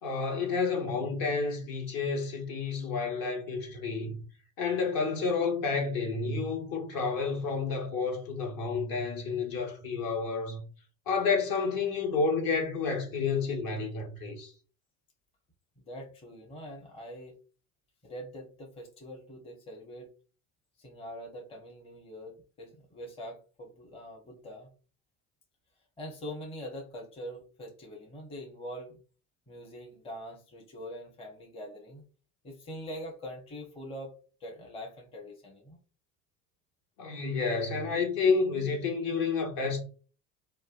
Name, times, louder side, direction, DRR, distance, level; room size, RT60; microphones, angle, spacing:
voice 1, 0.0-4.2 4.6-10.6 11.1-14.5 37.0-39.8, left 4 dB, 45° left, 1.0 m, -30 dB
voice 2, 15.8-17.4 18.0-20.1 20.8-24.7 26.0-29.0 29.5-32.0 32.4-34.1 34.4-35.8, equal, 15° left, 0.7 m, -43 dB
3.0 x 2.2 x 2.3 m
hypercardioid pair, 70°, 47 cm